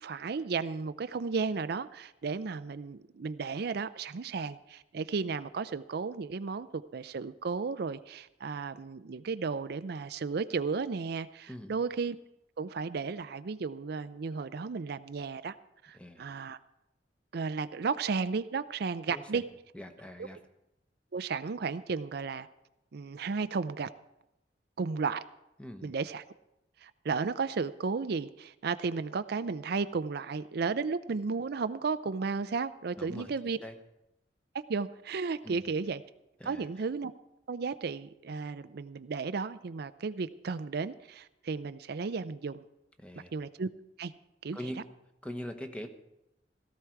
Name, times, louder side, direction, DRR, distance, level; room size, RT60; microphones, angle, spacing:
voice 1, 0.0-12.2 12.6-15.5 15.8-16.6 17.3-19.4 20.2-20.3 21.1-22.5 22.9-23.9 24.8-25.2 25.8-26.2 26.8-33.6 34.7-36.0 36.5-37.1 37.5-42.6 43.3-43.7 44.0-44.1 44.4-44.7, right 4 dB, 60° right, 12 dB, 0.5 m, -34 dB
voice 2, 19.1-19.4 19.7-20.4 25.6-25.9 33.0-33.3 33.6-33.7 35.4-35.7 36.4-36.7 43.0-43.3 44.5-44.9 45.2-45.9, equal, 5° left, 6 dB, 1.1 m, -42 dB
17.0 x 13.5 x 4.6 m, 0.89 s
head